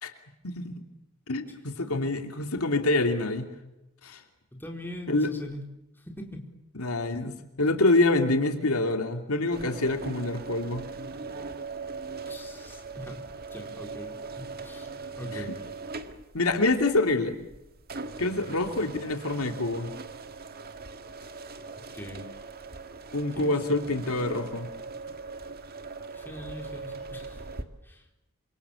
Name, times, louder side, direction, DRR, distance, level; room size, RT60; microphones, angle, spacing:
voice 1, 0.4-0.8 1.3-3.5 4.0-4.2 5.1-5.3 6.8-10.9 15.3-15.4 16.3-17.4 18.2-19.9 23.1-24.7, left 2 dB, 75° left, 5 dB, 2.8 m, -26 dB
voice 2, 4.5-5.6 6.1-6.4 12.2-13.2 13.5-14.9 15.2-15.5 21.9-22.3 23.4-23.5 26.1-27.4 27.8-28.0, left 1 dB, 10° left, 2 dB, 4.3 m, -41 dB
sound 1, 9.5-27.6, right 4 dB, 45° right, 1.8 m, -40 dB
27.5 x 26.5 x 7.1 m, 0.91 s
head